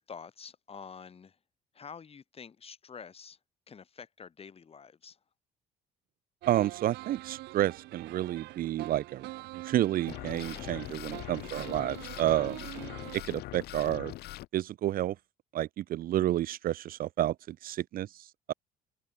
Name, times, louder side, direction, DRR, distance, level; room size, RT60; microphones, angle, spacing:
voice 1, 0.0-1.4 1.7-3.4 3.7-5.2 12.7-12.8, left 6 dB, 35° left, 5.8 m, -48 dB
sound 1, 6.4-13.2, right 18 dB, 85° right, 1.5 m, -45 dB
voice 2, 6.5-12.7 13.1-14.1 14.5-15.2 15.5-18.5, right 13 dB, 60° right, 0.7 m, -30 dB
sound 2, 10.1-14.5, left 17 dB, 75° left, 0.7 m, -42 dB
open air
cardioid pair, 110°, 17 cm